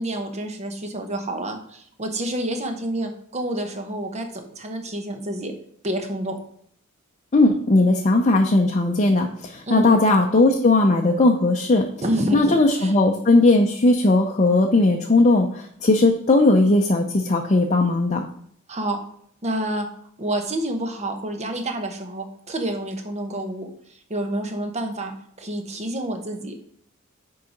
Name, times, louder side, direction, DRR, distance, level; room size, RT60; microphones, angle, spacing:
voice 1, 0.0-5.5 5.8-6.4 9.7-9.9 12.0-13.0 18.7-19.0 19.4-19.9 20.2-23.7 24.1-26.8, right 1 dB, 30° right, 6 dB, 1.0 m, -28 dB
voice 2, 7.3-11.9 12.3-18.3, left 2 dB, 35° left, 2 dB, 0.6 m, -18 dB
6.7 x 4.8 x 5.1 m, 0.65 s
head